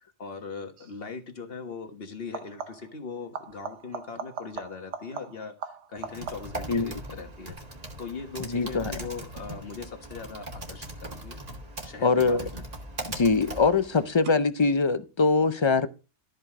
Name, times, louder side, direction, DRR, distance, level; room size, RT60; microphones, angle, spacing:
voice 1, 0.0-7.6 8.0-11.4 11.8-12.6 13.3-13.5, left 4 dB, 60° left, 1.6 m, -40 dB
sound 1, 0.8-1.0 2.2-3.0 3.3-6.7 12.1-12.7 14.2-14.3, right 6 dB, 80° right, 1.1 m, -40 dB
Typing, 6.0-14.2, right 1 dB, 35° right, 1.6 m, -40 dB
voice 2, 8.5-9.0 12.0-12.4 13.1-15.9, left 4 dB, 35° left, 0.5 m, -23 dB
12.5 x 5.4 x 3.6 m
omnidirectional pair, 1.1 m